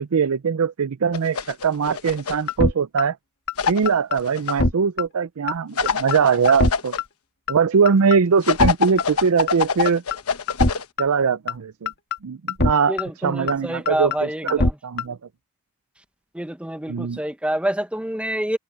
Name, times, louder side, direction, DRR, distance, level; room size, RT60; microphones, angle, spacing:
voice 1, 0.0-3.2 3.7-6.9 7.5-10.0 11.0-11.9 12.2-14.1 14.4-15.2 16.9-17.2, right 6 dB, 80° right, 0.5 m, -21 dB
sound 1, 1.1-2.5 3.6-4.5 5.8-7.0 8.4-10.9, left 6 dB, 90° left, 1.1 m, -25 dB
sound 2, 2.5-2.7 3.0-3.1 3.5-3.6 3.9-4.2 4.5-4.7 5.0-5.1 5.5-5.6 5.9-6.2 6.5-6.7 7.0-7.1 7.5-7.6 7.9-8.2 8.5-8.7 9.0-9.1 9.5-9.6 9.9-10.2 10.5-10.7 11.0-11.1 11.5-11.6 11.9-12.2 12.5-12.7 13.0-13.1 13.5-13.6 13.9-14.2 14.5-14.7 15.0-15.1, left 2 dB, 50° left, 2.1 m, -21 dB
voice 2, 12.9-14.7 16.3-18.6, right 1 dB, 5° right, 1.1 m, -27 dB
head